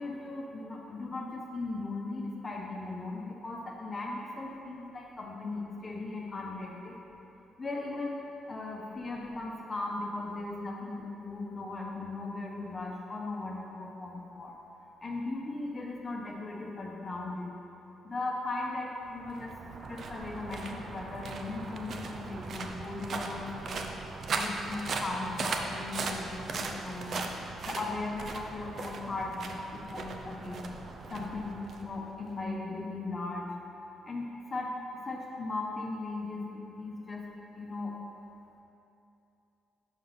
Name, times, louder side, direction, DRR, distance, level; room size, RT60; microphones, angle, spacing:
voice 1, 0.0-7.0 7.6-8.2 8.4-14.5 15.0-17.5 18.0-19.5 19.9-23.9 24.3-27.2 27.6-30.6 31.1-33.5 34.0-37.3 37.6-38.0, left 2 dB, 30° left, -2 dB, 0.9 m, -38 dB
sound 1, 19.0-32.4, right 3 dB, 55° right, 0.6 m, -38 dB
5.3 x 5.3 x 5.8 m, 2.9 s
cardioid pair, 90°, 0 cm